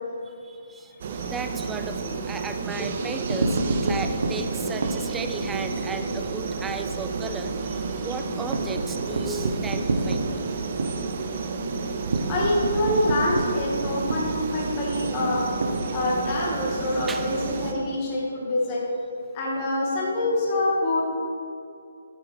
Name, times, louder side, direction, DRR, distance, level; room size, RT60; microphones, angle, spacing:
voice 1, 0.3-0.9 1.2-10.3 17.1-17.3, right 4 dB, 5° right, 7 dB, 0.4 m, -35 dB
sound 1, 1.0-17.7, right 4 dB, 40° right, 0.8 m, -31 dB
sound 2, 3.1-6.3 6.6-6.8 7.1-7.2 7.6-16.4, right 2 dB, 80° right, 1.5 m, -29 dB
voice 2, 12.3-15.5 15.9-18.8 19.3-21.0, left 1 dB, 25° left, -5 dB, 2.0 m, -25 dB
12.5 x 9.1 x 3.6 m, 2.5 s
hypercardioid pair, 170°, 0 cm